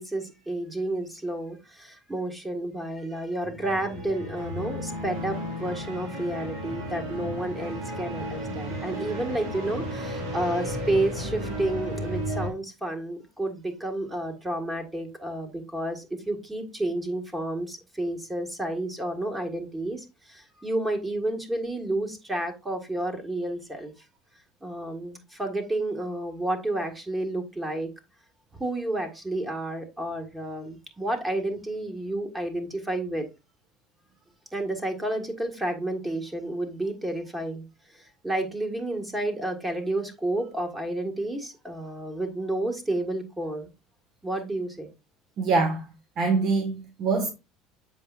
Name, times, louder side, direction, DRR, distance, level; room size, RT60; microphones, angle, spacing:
voice 1, 0.0-23.9 24.6-27.9 28.6-33.3 34.5-37.6 38.2-43.7 44.2-44.9, right 1 dB, 15° right, 1.7 m, -30 dB
sound 1, 3.4-12.5, equal, 90° right, 2.2 m, -34 dB
voice 2, 45.4-47.3, right 4 dB, 55° right, 1.6 m, -25 dB
7.5 x 5.1 x 2.5 m
supercardioid pair, 90°, 0 cm